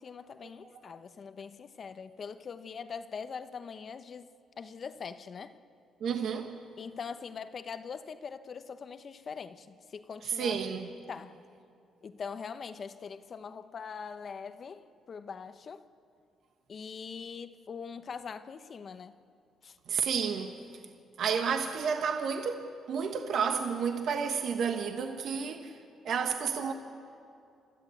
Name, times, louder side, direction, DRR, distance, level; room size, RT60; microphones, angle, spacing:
voice 1, 0.0-4.3 4.6-5.5 6.8-10.6 11.1-11.4 12.0-15.8 16.7-19.2 19.6-19.7, left 6 dB, 45° left, 1.0 m, -42 dB
voice 2, 6.0-6.6 10.2-10.9 19.9-20.5 21.2-25.8 26.0-26.7, right 6 dB, 65° right, 1.3 m, -31 dB
29.5 x 13.5 x 8.4 m
cardioid pair, 95°, 0 cm